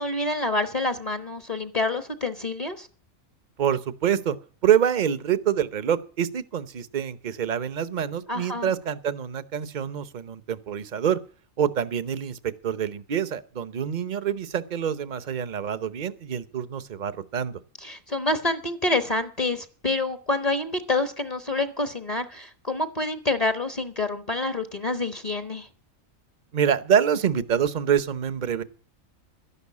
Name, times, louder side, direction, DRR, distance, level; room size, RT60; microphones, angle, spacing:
voice 1, 0.0-2.9 8.3-8.7 17.8-25.7, left 2 dB, 30° left, 1.1 m, -27 dB
voice 2, 3.6-4.4 4.6-11.2 11.6-17.6 26.5-28.6, right 8 dB, 40° right, 0.9 m, -26 dB
12.5 x 11.0 x 8.4 m
omnidirectional pair, 1.4 m